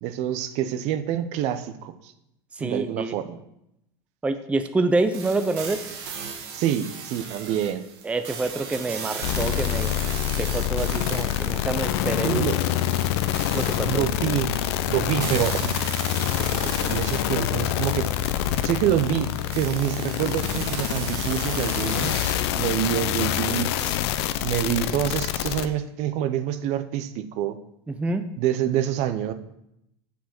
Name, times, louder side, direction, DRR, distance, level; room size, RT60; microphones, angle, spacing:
voice 1, 0.0-2.1 2.6-3.4 6.5-7.8 12.2-12.6 13.8-14.6 14.9-15.8 16.6-18.1 18.6-19.3 19.6-24.0 24.4-27.6 28.4-29.3, right 11 dB, 55° right, 10 dB, 0.8 m, -26 dB
voice 2, 2.5-3.1 4.2-5.8 8.0-9.9 10.4-12.4 13.5-14.0 27.9-28.3, right 3 dB, 10° right, 8 dB, 0.5 m, -27 dB
sound 1, 5.1-22.3, right 6 dB, 70° right, 1.9 m, -37 dB
sound 2, 9.2-25.7, left 12 dB, 75° left, 0.6 m, -26 dB
7.1 x 7.0 x 6.0 m, 0.80 s
supercardioid pair, 125°, 14 cm